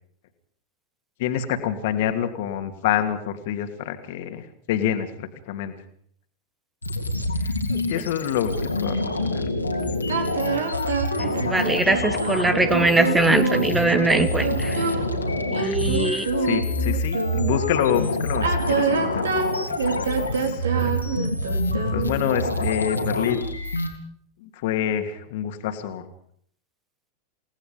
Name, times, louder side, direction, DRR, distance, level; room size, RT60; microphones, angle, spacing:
voice 1, 1.2-5.7 7.4-7.5 7.9-8.5 8.8-9.4 15.6-21.0 21.9-23.4 24.4-26.0, left 10 dB, 50° left, 7 dB, 2.6 m, -27 dB
Sci-Fi Computer Ambience - Pure Data Patch, 6.8-23.9, left 1 dB, 80° left, 3.2 m, -26 dB
sound 1, 10.1-17.6 18.3-22.3, right 5 dB, 65° right, 3.4 m, -27 dB
voice 2, 11.2-14.9 15.5-16.3, right 2 dB, 10° right, 11 dB, 1.4 m, -22 dB
29.5 x 18.5 x 5.5 m, 0.63 s
figure-of-eight pair, 90°, 0 cm